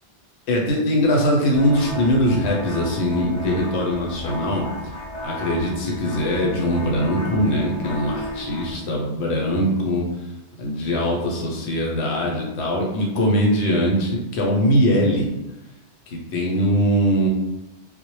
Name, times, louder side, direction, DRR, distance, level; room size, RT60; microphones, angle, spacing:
voice 1, 0.5-4.7 5.2-10.1 10.6-15.3 16.1-17.3, equal, 75° left, -1 dB, 0.9 m, -21 dB
sound 1, 1.5-8.7, left 1 dB, 35° left, 0.8 m, -33 dB
2.1 x 2.1 x 3.0 m, 0.98 s
omnidirectional pair, 1.2 m